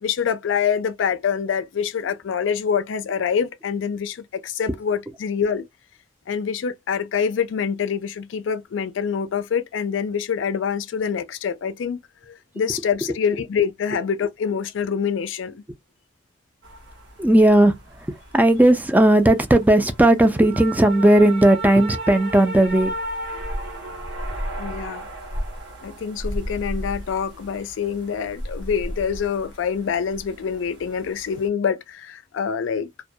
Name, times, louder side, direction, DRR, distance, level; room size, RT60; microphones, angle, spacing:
voice 1, 0.0-5.7 6.3-12.0 12.3-15.6 24.6-25.1 25.8-32.9, left 7 dB, 90° left, 0.4 m, -25 dB
sound 1, 16.6-31.5, right 1 dB, 65° right, 1.0 m, -34 dB
voice 2, 17.2-22.9, right 1 dB, 10° right, 0.3 m, -16 dB
2.2 x 2.1 x 2.6 m
head